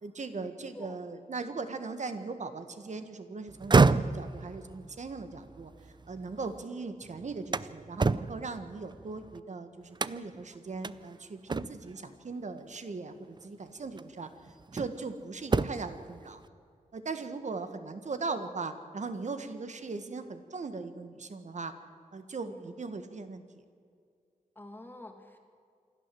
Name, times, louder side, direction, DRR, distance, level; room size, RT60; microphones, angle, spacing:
voice 1, 0.0-5.7 6.1-14.3 14.7-16.4 16.9-21.7 22.1-23.4, right 4 dB, 60° right, 9 dB, 1.6 m, -39 dB
sound 1, 3.5-6.6 7.0-9.4 10.0-10.4 10.8-11.0 11.5-12.0 13.2-13.4 14.0-15.1 15.4-16.0, right 4 dB, 35° right, 0.5 m, -29 dB
voice 2, 24.6-25.4, left 1 dB, 15° left, 4 dB, 2.6 m, -48 dB
27.5 x 12.5 x 7.7 m, 2.3 s
wide cardioid pair, 115°, 14 cm